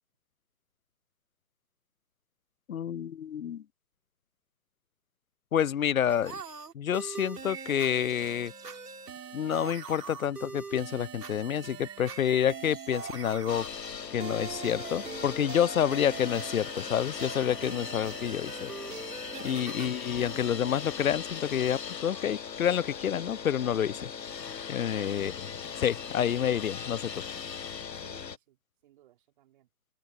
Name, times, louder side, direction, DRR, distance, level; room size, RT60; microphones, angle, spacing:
voice 1, 2.7-3.6 5.5-6.4 6.7-8.5 9.3-13.6 14.1-18.7 19.4-24.1 24.7-25.3 25.8-27.1, left 9 dB, 60° left, 0.6 m, -28 dB
sound 1, 6.1-21.6, right 5 dB, 70° right, 5.6 m, -43 dB
sound 2, 7.5-9.0 11.4-13.9, right 8 dB, 10° right, 5.3 m, -50 dB
sound 3, 13.5-28.4, left 7 dB, 85° left, 1.3 m, -39 dB
voice 2, 28.0-29.7, right 13 dB, 30° right, 4.9 m, -61 dB
open air
hypercardioid pair, 155°, 49 cm